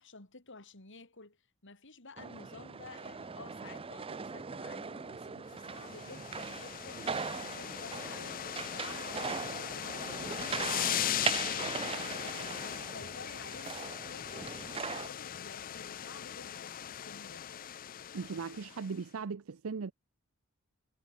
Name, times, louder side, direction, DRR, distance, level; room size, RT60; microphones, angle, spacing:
voice 1, 0.0-8.4 8.7-12.3 12.8-17.4, left 3 dB, 60° left, 4.0 m, -52 dB
sound 1, 2.2-15.1, right 5 dB, 25° right, 0.5 m, -40 dB
sound 2, 5.7-18.9, left 10 dB, 40° left, 0.5 m, -39 dB
voice 2, 18.1-19.9, right 5 dB, 70° right, 0.6 m, -38 dB
head